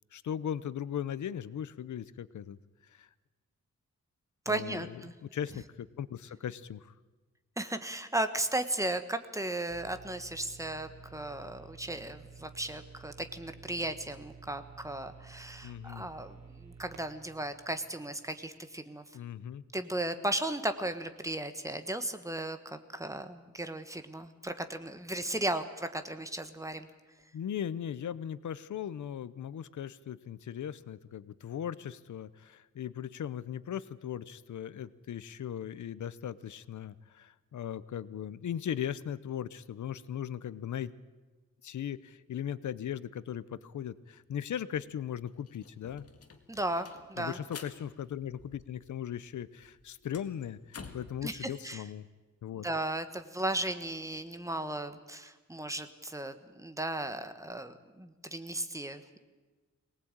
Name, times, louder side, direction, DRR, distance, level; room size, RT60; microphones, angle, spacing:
voice 1, 0.1-2.6 2.8-3.1 4.5-6.9 15.6-16.1 19.1-19.6 27.3-40.9 41.6-46.1 47.2-52.1 52.4-52.7, left 9 dB, 85° left, 16 dB, 0.9 m, -38 dB
voice 2, 4.4-5.1 7.6-19.0 19.7-26.9 46.5-47.4 51.2-51.8 52.5-59.2, right 1 dB, 10° right, 9 dB, 1.2 m, -36 dB
sound 1, 9.7-18.6, right 5 dB, 85° right, 3.4 m, -52 dB
sound 2, 44.7-44.8 45.1-49.0 49.3-51.2, left 5 dB, 55° left, 2.1 m, -50 dB
23.5 x 19.0 x 8.9 m, 1.3 s
wide cardioid pair, 170°, 29 cm